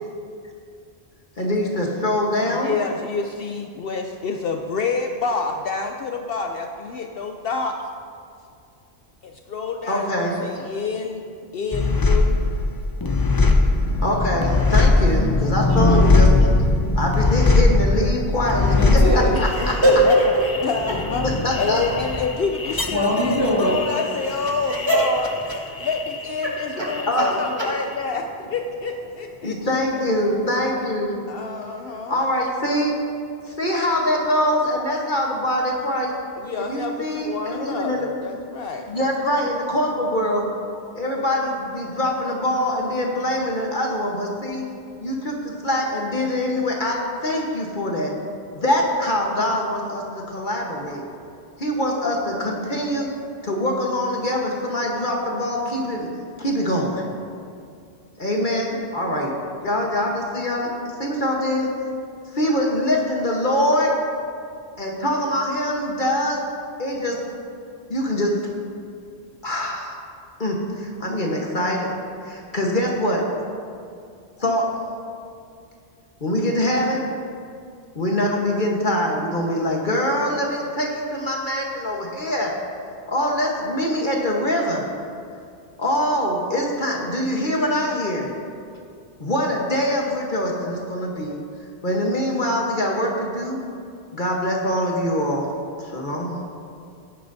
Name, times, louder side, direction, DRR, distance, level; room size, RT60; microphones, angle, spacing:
voice 1, 1.4-2.8 9.9-10.4 14.0-16.3 17.0-19.0 19.6-19.7 21.4-21.8 27.1-27.3 29.4-31.2 32.1-32.9 33.5-36.1 36.6-38.1 38.9-40.5 40.9-44.7 45.0-48.1 48.5-51.0 51.6-53.1 53.4-56.1 56.4-57.0 58.2-59.3 59.6-60.7 61.0-61.7 62.3-64.0 64.8-66.4 66.8-67.2 67.9-68.3 69.4-70.0 70.4-71.9 72.2-73.2 74.4-74.7 76.2-77.1 77.9-82.5 83.1-84.9 85.8-88.3 89.2-91.4 91.8-93.6 94.1-95.5 95.8-96.4, left 1 dB, 45° left, -1 dB, 1.4 m, -23 dB
voice 2, 2.5-7.8 9.2-11.2 11.5-12.5 15.7-16.2 19.6-20.1 20.6-21.2 21.6-25.3 25.8-29.6 31.3-32.2 36.4-38.9, left 4 dB, 65° left, 4 dB, 0.8 m, -28 dB
sound 1, 11.7-26.6 26.9-27.7, left 3 dB, 30° left, 0.4 m, -20 dB
voice 3, 18.7-20.5 22.9-23.8 24.4-25.1 25.4-25.9 26.7-27.2 27.6-27.7 29.4-29.7, equal, 25° right, -6 dB, 2.3 m, -21 dB
16.5 x 10.0 x 2.7 m, 2.4 s
omnidirectional pair, 1.1 m